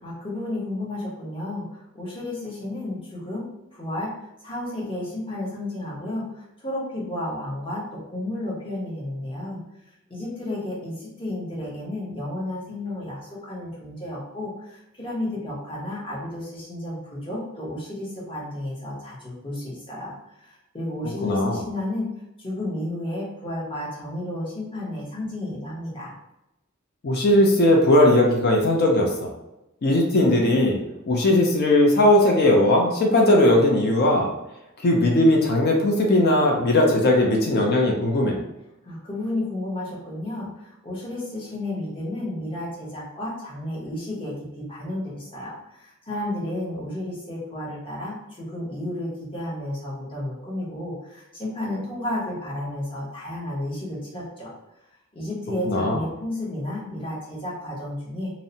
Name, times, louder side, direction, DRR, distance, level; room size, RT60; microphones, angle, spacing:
voice 1, 0.0-4.1 4.4-9.6 10.1-22.1 22.4-26.1 38.8-54.5 55.1-58.3, left 1 dB, 25° left, -6 dB, 0.8 m, -32 dB
voice 2, 21.2-21.6 27.0-29.3 29.8-30.8 31.1-34.3 34.8-38.4 55.7-56.0, left 1 dB, 50° left, 0 dB, 0.4 m, -18 dB
2.6 x 2.0 x 2.7 m, 0.90 s
head